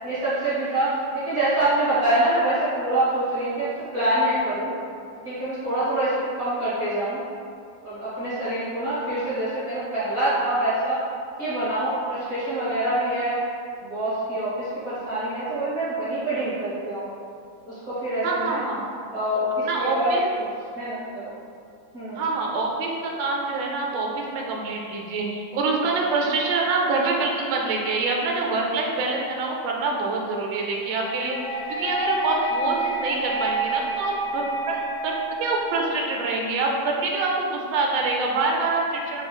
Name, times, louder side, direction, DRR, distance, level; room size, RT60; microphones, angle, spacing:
voice 1, 0.0-4.7 5.2-7.2 7.8-11.0 11.4-13.4 13.8-17.1 17.7-18.6 19.1-20.5 20.7-21.3 21.9-22.3, right 1 dB, 55° right, -12 dB, 0.7 m, -25 dB
voice 2, 18.2-18.9 19.6-20.3 22.1-31.3 31.7-39.2, right 3 dB, 80° right, -1 dB, 1.2 m, -25 dB
sound 1, 30.9-35.9, right 2 dB, 75° left, 0.8 m, -29 dB
3.6 x 3.6 x 2.2 m, 2.4 s
omnidirectional pair, 2.1 m